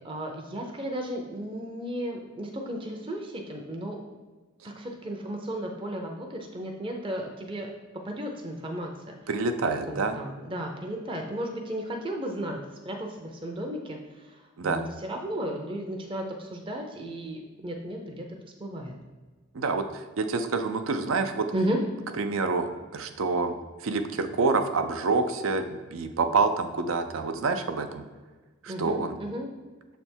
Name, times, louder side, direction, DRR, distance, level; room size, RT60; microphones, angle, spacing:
voice 1, 0.0-4.0 4.6-7.7 8.0-9.1 9.9-12.6 12.8-18.2 18.6-18.9 21.5-21.8 28.7-29.5, right 1 dB, 25° right, 1 dB, 0.6 m, -34 dB
voice 2, 9.3-10.2 14.6-14.8 19.5-21.5 22.2-23.5 23.8-28.0 28.6-29.1, right 4 dB, 75° right, 8 dB, 0.5 m, -27 dB
6.9 x 3.4 x 4.4 m, 1.3 s
head